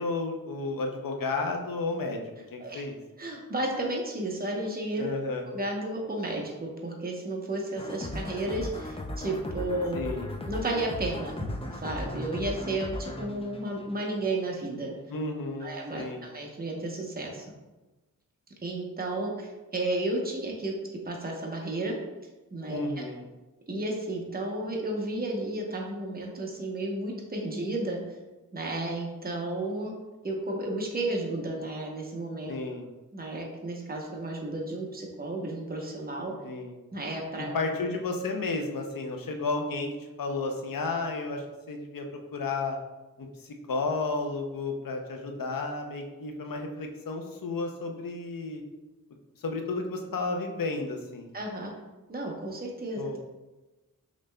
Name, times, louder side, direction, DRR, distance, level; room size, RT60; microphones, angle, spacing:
voice 1, 0.0-3.0 5.0-5.5 9.9-10.3 15.1-16.3 22.7-23.2 32.5-32.8 36.4-36.7 37.4-39.9 40.2-42.1 42.3-42.8 43.2-48.6 49.4-51.3 53.0-53.2, left 3 dB, 70° left, 3 dB, 0.7 m, -32 dB
voice 2, 3.2-5.1 5.5-10.0 10.5-14.9 15.6-17.4 18.6-20.7 21.0-22.0 22.5-23.0 23.7-28.2 28.5-29.9 30.2-32.5 33.1-36.3 36.9-37.5 51.3-51.7 52.1-53.0, right 2 dB, 25° right, 0 dB, 0.8 m, -32 dB
sound 1, 7.8-14.5, left 1 dB, 15° left, 0.4 m, -37 dB
5.0 x 3.1 x 2.2 m, 1.1 s
cardioid pair, 55°, 35 cm